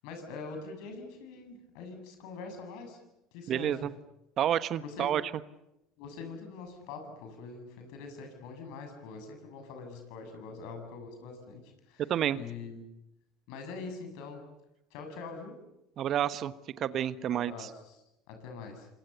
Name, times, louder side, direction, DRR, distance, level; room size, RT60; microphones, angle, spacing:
voice 1, 0.0-3.0 3.3-3.8 4.8-5.1 6.0-12.8 13.5-14.4 14.9-15.6 17.3-18.9, left 4 dB, 65° left, 5 dB, 7.7 m, -44 dB
voice 2, 3.5-3.9 4.4-5.2 12.1-12.4 16.0-16.5 16.8-17.7, right 10 dB, 45° right, 14 dB, 1.2 m, -29 dB
30.0 x 26.0 x 7.0 m, 0.88 s
hypercardioid pair, 70°, 0 cm